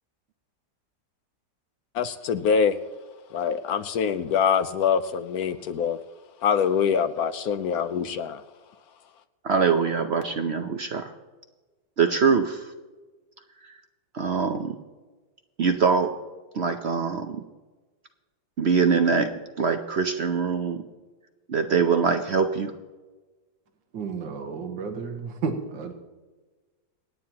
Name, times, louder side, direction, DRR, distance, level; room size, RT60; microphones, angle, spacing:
voice 1, 1.9-2.8 3.3-6.0 6.4-8.4, left 7 dB, 65° left, 11 dB, 1.0 m, -24 dB
voice 2, 9.4-11.1 12.0-12.7 14.1-14.7 15.6-16.1 16.5-17.4 18.6-19.3 19.6-20.8 21.5-22.7, right 5 dB, 60° right, 7 dB, 0.7 m, -23 dB
voice 3, 23.9-25.9, right 5 dB, 85° right, 5 dB, 1.9 m, -32 dB
28.0 x 9.3 x 2.9 m, 1.3 s
omnidirectional pair, 1.9 m